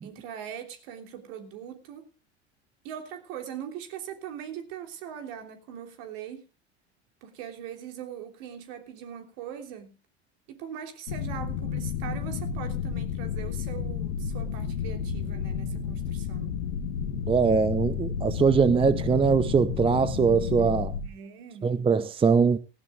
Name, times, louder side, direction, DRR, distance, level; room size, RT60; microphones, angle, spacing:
voice 1, 0.0-2.1 2.8-6.5 7.2-9.9 10.5-16.6 21.0-21.7, right 9 dB, 60° right, 3.5 m, -41 dB
sound 1, 11.1-21.1, left 7 dB, 75° left, 1.8 m, -31 dB
voice 2, 17.3-20.9 21.6-22.6, right 5 dB, 15° right, 0.8 m, -22 dB
17.5 x 16.5 x 2.5 m
hypercardioid pair, 90°, 34 cm